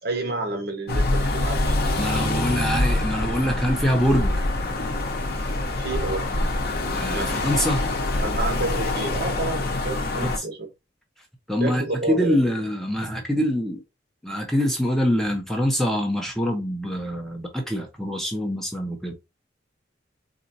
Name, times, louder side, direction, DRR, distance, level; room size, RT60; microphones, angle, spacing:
voice 1, 0.0-1.8 5.8-6.2 7.1-7.3 8.2-10.7 11.6-12.4, right 2 dB, 55° right, 1.0 m, -29 dB
sound 1, 0.9-10.4, left 2 dB, 55° left, 0.7 m, -25 dB
voice 2, 2.0-4.5 6.9-7.8 10.2-10.5 11.5-13.8 14.2-19.1, equal, ahead, 0.7 m, -25 dB
4.1 x 2.4 x 2.6 m
head